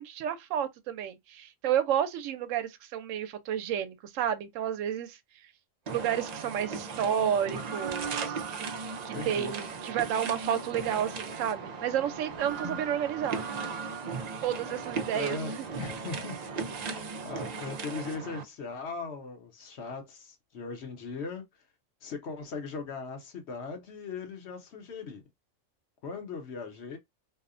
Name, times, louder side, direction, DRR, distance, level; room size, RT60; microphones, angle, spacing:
voice 1, 0.0-5.2 5.9-8.7 9.0-13.4 14.4-15.4, right 9 dB, 90° right, 0.9 m, -31 dB
sound 1, 5.9-18.4, right 5 dB, 65° right, 0.4 m, -37 dB
voice 2, 9.1-9.5 15.1-15.5 15.8-16.4 17.2-21.4 22.0-25.2 26.0-27.0, left 4 dB, 65° left, 1.0 m, -39 dB
2.7 x 2.0 x 2.4 m
omnidirectional pair, 1.3 m